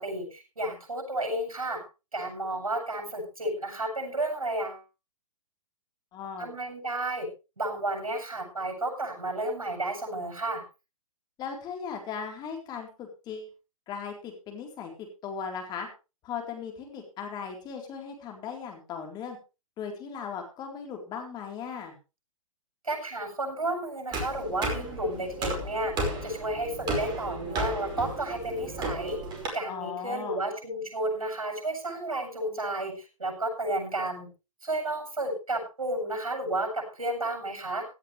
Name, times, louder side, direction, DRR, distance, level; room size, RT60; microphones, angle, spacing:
voice 1, 0.0-1.8 2.1-4.8 6.4-7.3 7.6-10.6 22.8-25.9 26.2-29.2 29.5-32.9 33.2-34.3 34.6-37.8, right 1 dB, 80° right, 2 dB, 7.8 m, -32 dB
voice 2, 6.1-6.5 11.4-13.5 13.9-15.9 16.2-19.4 19.8-21.9 29.7-30.4, left 6 dB, 25° left, 3 dB, 3.9 m, -37 dB
sound 1, 24.1-29.5, right 2 dB, 25° right, 5.2 m, -33 dB
17.0 x 13.0 x 3.3 m, 0.30 s
figure-of-eight pair, 120°, 18 cm